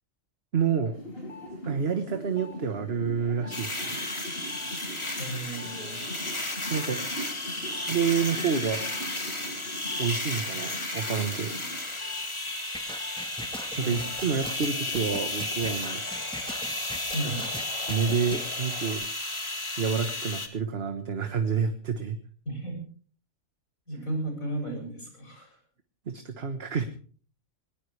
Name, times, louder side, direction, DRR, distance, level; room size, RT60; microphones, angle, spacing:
voice 1, 0.5-1.0 1.7-4.0 6.7-7.0 7.6-8.9 10.0-11.5 13.8-16.0 17.2-17.3 17.9-19.1 19.8-22.2 26.1-26.8, right 6 dB, 50° right, 8 dB, 1.5 m, -28 dB
sound 1, 0.9-12.2 12.6-18.9, left 1 dB, 45° left, 4.9 m, -43 dB
sound 2, 3.5-20.5, left 1 dB, 20° left, 2.2 m, -33 dB
voice 2, 5.2-6.0 13.8-14.4 17.1-17.5 22.5-22.8 23.9-25.6, right 1 dB, 90° left, 3 dB, 7.7 m, -34 dB
sound 3, 12.7-18.4, equal, 5° left, 1.4 m, -40 dB
20.5 x 19.5 x 3.3 m, 0.43 s
omnidirectional pair, 1.4 m